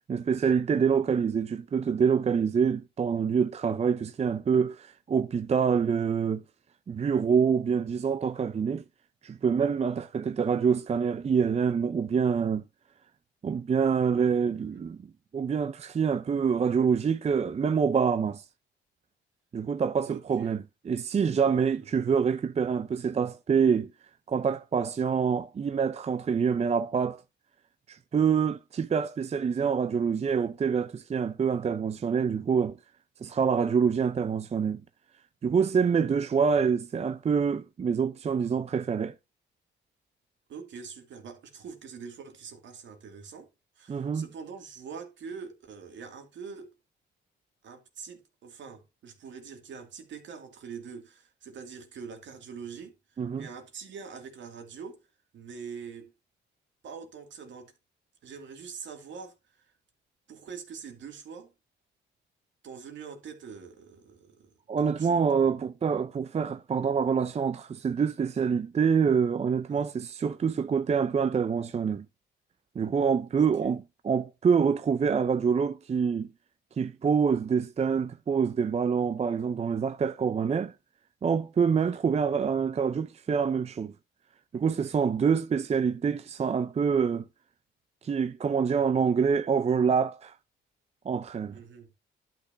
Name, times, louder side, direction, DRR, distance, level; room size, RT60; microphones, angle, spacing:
voice 1, 0.1-6.4 6.9-8.8 9.2-12.6 13.4-15.1 15.3-18.4 19.5-20.6 20.8-23.9 24.3-27.2 27.9-32.8 33.2-34.8 35.4-39.1 43.9-44.2 53.2-53.5 64.7-72.1 72.8-73.8 74.0-76.3 76.8-80.7 81.2-83.9 84.5-87.2 88.0-90.3 91.0-91.6, right 6 dB, 35° right, 0.6 m, -26 dB
voice 2, 20.0-20.6 21.5-22.1 36.1-36.2 40.5-43.5 43.8-46.7 47.6-55.0 55.3-56.1 56.8-57.7 58.2-59.7 60.3-61.5 62.6-65.5 69.7-69.9 73.4-73.8 81.9-82.0 91.5-91.9, right 6 dB, 70° right, 2.3 m, -44 dB
11.5 x 6.0 x 2.6 m
cardioid pair, 90°, 20 cm